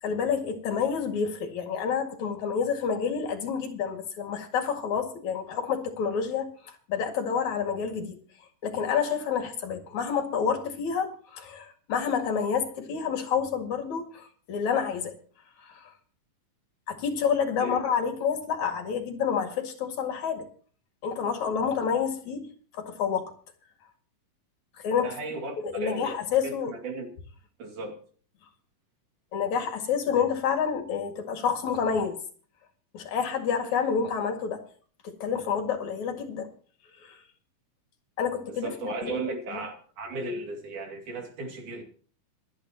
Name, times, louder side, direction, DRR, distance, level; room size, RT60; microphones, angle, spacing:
voice 1, 0.0-8.2 8.6-15.1 15.6-15.9 16.9-20.5 21.0-22.5 22.7-23.3 24.8-25.1 25.6-26.8 29.3-32.2 32.9-34.6 35.0-36.5 37.0-37.2 38.2-39.2 39.5-39.6, left 7 dB, 65° left, 3.3 m, -28 dB
voice 2, 25.0-26.2 26.4-27.1 27.6-28.0 38.5-41.8, right 3 dB, 70° right, 3.9 m, -35 dB
27.0 x 9.6 x 3.0 m
omnidirectional pair, 3.7 m